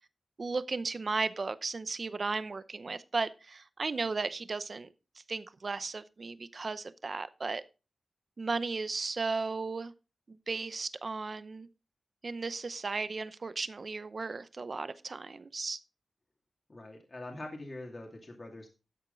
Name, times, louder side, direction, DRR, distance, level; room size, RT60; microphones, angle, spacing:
voice 1, 0.4-4.9 5.3-7.6 8.4-9.9 10.3-11.7 12.2-15.8, right 4 dB, 40° right, 0.7 m, -35 dB
voice 2, 16.7-18.7, left 2 dB, 30° left, 2.5 m, -44 dB
12.5 x 8.0 x 3.9 m
wide cardioid pair, 145°, 0 cm